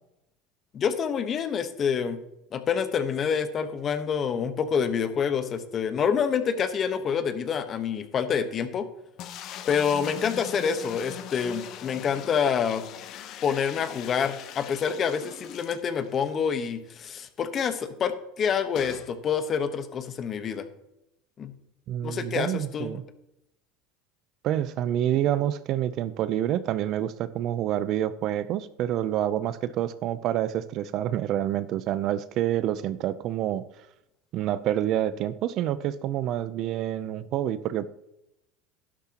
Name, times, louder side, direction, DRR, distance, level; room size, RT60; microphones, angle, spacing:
voice 1, 0.7-2.2 2.5-8.9 9.7-12.8 13.4-20.7 21.4-21.5 22.0-23.0, left 7 dB, 35° left, 10 dB, 1.2 m, -27 dB
sound 1, 9.2-16.3 16.7-16.8 17.0-17.1 18.7-19.1, left 10 dB, 55° left, 1.0 m, -41 dB
voice 2, 21.9-23.0 24.4-33.6 34.3-37.9, right 11 dB, 55° right, 15 dB, 0.6 m, -27 dB
11.5 x 11.5 x 3.0 m, 0.86 s
supercardioid pair, 105°, 0 cm